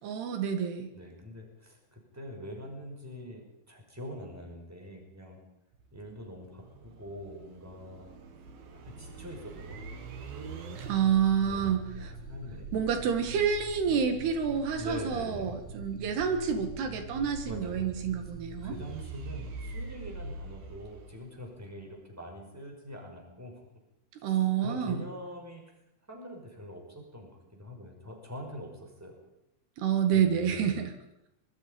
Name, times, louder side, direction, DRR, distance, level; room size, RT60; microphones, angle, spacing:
voice 1, 0.0-0.9 10.9-12.1 12.7-18.7 24.2-25.0 29.8-30.9, right 7 dB, 85° right, 6 dB, 4.0 m, -28 dB
voice 2, 0.9-5.4 5.9-8.0 8.8-9.8 11.4-12.7 14.8-15.5 17.5-17.9 18.6-23.6 24.3-24.4 24.6-25.6 26.1-29.2 30.1-30.7, left 1 dB, 5° right, 1 dB, 5.4 m, -44 dB
sound 1, 5.7-21.7, right 3 dB, 70° right, 3.9 m, -43 dB
25.5 x 21.0 x 5.4 m, 0.86 s
omnidirectional pair, 4.5 m